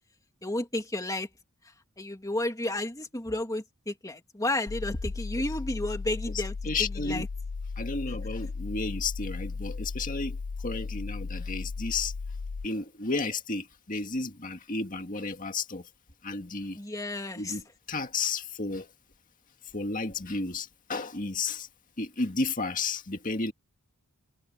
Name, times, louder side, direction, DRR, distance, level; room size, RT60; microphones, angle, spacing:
voice 1, 0.4-1.3 2.0-6.5 6.8-7.3 16.7-17.6, left 1 dB, 15° left, 2.7 m, -32 dB
sound 1, 4.7-12.7, left 4 dB, 60° left, 0.5 m, -36 dB
voice 2, 6.6-7.3 7.8-12.1 12.6-15.9 16.2-16.8 17.3-18.9 19.7-21.7 22.0-23.5, left 3 dB, 35° left, 2.1 m, -32 dB
head